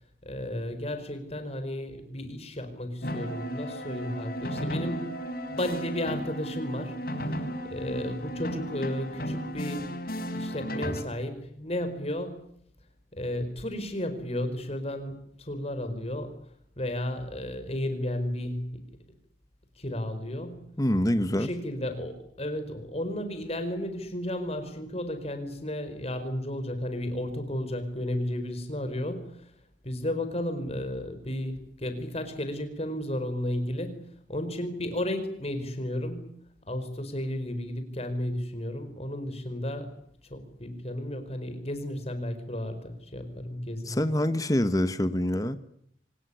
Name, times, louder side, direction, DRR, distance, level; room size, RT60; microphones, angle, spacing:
voice 1, 0.2-5.1 5.5-6.9 7.7-9.9 10.3-12.4 13.1-16.4 16.8-18.8 19.8-20.6 21.3-29.4 29.8-34.0 34.3-36.3 36.7-39.9 40.3-44.0, left 1 dB, 35° left, 9 dB, 4.8 m, -33 dB
sound 1, 3.0-11.0, equal, 55° left, 4.8 m, -34 dB
voice 2, 20.8-21.5 43.9-45.6, left 1 dB, 20° left, 11 dB, 1.2 m, -25 dB
25.0 x 20.0 x 10.0 m, 0.70 s
head